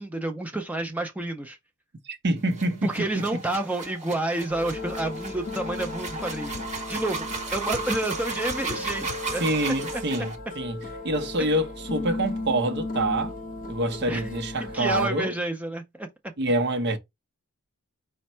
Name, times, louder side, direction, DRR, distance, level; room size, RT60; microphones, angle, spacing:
voice 1, 0.0-1.6 2.8-9.4 9.9-10.0 11.4-11.5 14.1-14.3 14.6-16.1, right 2 dB, 5° right, 0.4 m, -30 dB
voice 2, 2.1-2.9 9.4-10.8 11.0-13.3 13.7-15.3 16.4-17.0, right 1 dB, 50° right, 0.7 m, -26 dB
sound 1, 2.5-10.4, right 4 dB, 35° right, 1.3 m, -35 dB
sound 2, 4.5-15.1, left 2 dB, 40° left, 1.0 m, -36 dB
5.2 x 2.2 x 4.2 m
head